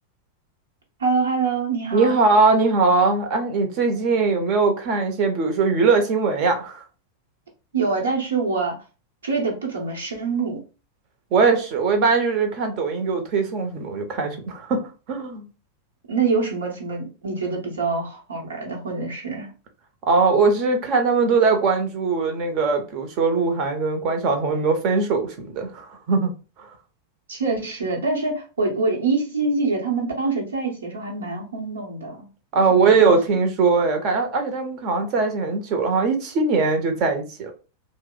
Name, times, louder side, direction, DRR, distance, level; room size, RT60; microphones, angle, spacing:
voice 1, 1.0-2.2 7.7-8.8 9.2-10.6 16.1-19.5 27.3-32.3 32.7-33.2, right 4 dB, 70° right, 0.9 m, -25 dB
voice 2, 1.9-6.8 11.3-14.8 15.1-15.5 20.1-26.3 26.6-26.7 32.5-37.5, right 4 dB, 40° right, 0.8 m, -21 dB
2.9 x 2.0 x 3.8 m
figure-of-eight pair, 90°, 0 cm